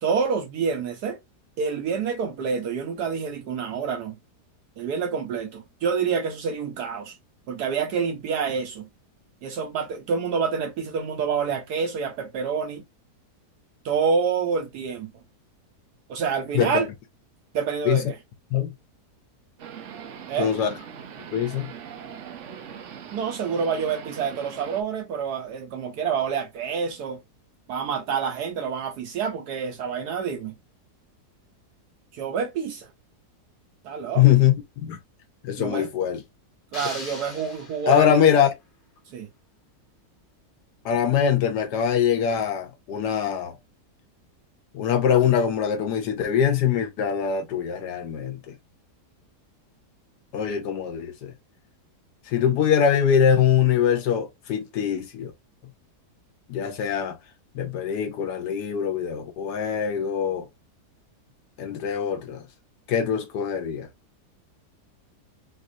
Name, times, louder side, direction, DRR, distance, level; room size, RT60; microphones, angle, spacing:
voice 1, 0.0-1.2 1.6-4.2 4.8-7.1 7.5-8.9 9.4-12.8 13.8-15.1 16.1-16.9 17.5-18.2 20.3-20.5 23.1-27.2 27.7-30.5 32.1-32.9 33.8-34.2 35.6-35.9 36.7-38.2 39.1-39.3, right 6 dB, 75° right, 1.3 m, -27 dB
voice 2, 16.5-16.9 17.8-18.0 18.5-18.7 20.4-20.7 21.3-21.7 34.2-34.5 34.8-35.0 35.4-36.2 37.9-38.5 40.8-43.6 44.7-48.5 50.3-51.3 52.3-55.3 56.5-57.2 57.5-60.5 61.6-62.4 62.9-63.9, left 8 dB, 80° left, 1.3 m, -23 dB
sound 1, 19.6-24.8, right 8 dB, 60° right, 0.9 m, -41 dB
sound 2, 36.7-38.3, left 3 dB, 35° left, 1.3 m, -39 dB
6.1 x 2.5 x 2.7 m
omnidirectional pair, 1.8 m